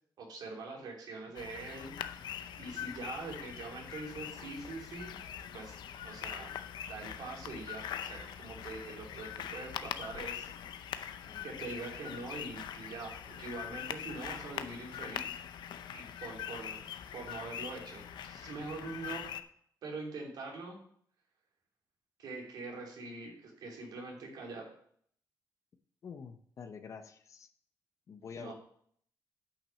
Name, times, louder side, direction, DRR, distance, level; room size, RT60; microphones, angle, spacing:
voice 1, 0.2-1.9 2.5-5.1 5.5-5.8 6.0-10.5 10.8-11.2 11.4-15.4 15.9-16.8 17.1-19.3 19.8-20.8 22.2-24.7 28.3-28.5, right 3 dB, 70° right, -1 dB, 3.2 m, -44 dB
sound 1, 1.4-19.4, left 9 dB, 85° left, 0.6 m, -43 dB
voice 2, 11.3-11.6 26.0-27.5 28.1-28.5, left 6 dB, 45° left, 8 dB, 0.7 m, -47 dB
8.8 x 5.9 x 6.3 m, 0.63 s
wide cardioid pair, 165°, 7 cm